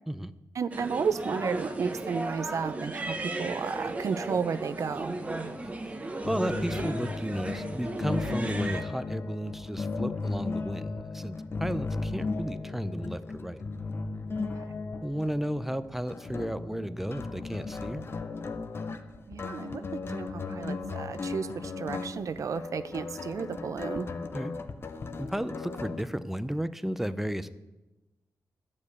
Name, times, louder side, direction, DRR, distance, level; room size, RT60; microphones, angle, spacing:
voice 1, 0.6-5.2 14.4-14.6 19.3-24.1, right 6 dB, 55° right, 12 dB, 0.5 m, -33 dB
sound 1, 0.7-8.8, right 2 dB, 20° right, 0.9 m, -35 dB
voice 2, 5.6-5.9 6.3-13.7 15.0-18.0 24.3-24.5 25.2-27.5, equal, 5° right, 13 dB, 0.5 m, -33 dB
sound 2, 6.2-26.0, left 3 dB, 35° left, 0.7 m, -36 dB
11.5 x 5.3 x 8.3 m, 1.1 s
wide cardioid pair, 115°, 7 cm